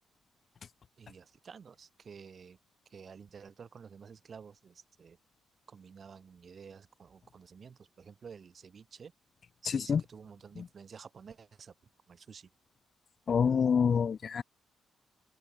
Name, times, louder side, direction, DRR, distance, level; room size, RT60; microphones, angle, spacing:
voice 1, 1.0-2.6 2.9-5.2 5.7-9.1 9.6-11.7 12.1-12.5, right 6 dB, 45° right, 4.0 m, -51 dB
voice 2, 9.7-10.0 10.6-10.7 13.3-14.4, left 6 dB, 45° left, 0.7 m, -27 dB
open air
cardioid pair, 90°, 0 cm